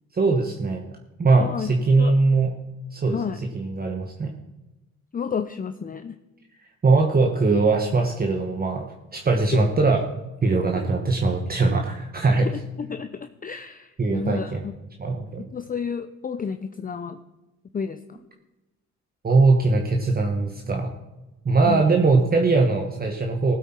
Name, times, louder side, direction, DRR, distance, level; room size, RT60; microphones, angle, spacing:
voice 1, 0.1-0.8 1.2-2.5 2.9-3.2 3.5-4.3 6.8-8.8 9.1-10.0 10.4-12.5 14.0-14.6 15.0-15.4 19.2-20.9 21.4-23.5, right 3 dB, 30° right, 2 dB, 1.3 m, -21 dB
voice 2, 1.4-2.1 3.1-3.4 5.1-6.2 9.5-9.6 10.7-10.9 12.8-14.7 15.4-17.2 17.7-18.2 21.7-22.0, left 6 dB, 30° left, 9 dB, 0.6 m, -31 dB
15.5 x 8.3 x 4.4 m, 1.0 s
cardioid pair, 90°, 30 cm